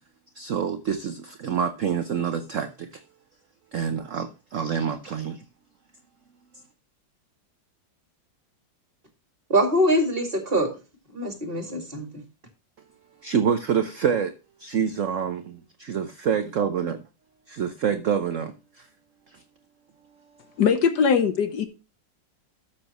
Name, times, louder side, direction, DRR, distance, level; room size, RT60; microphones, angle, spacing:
voice 1, 0.3-3.0 3.7-5.4 13.2-14.3 14.6-17.0 17.5-18.9 19.3-19.4, right 7 dB, 55° right, 0.9 m, -27 dB
voice 2, 9.5-10.7 11.1-12.0, equal, 30° right, 2.4 m, -23 dB
voice 3, 20.6-21.7, left 6 dB, 65° left, 1.5 m, -21 dB
13.0 x 7.3 x 3.0 m
omnidirectional pair, 2.0 m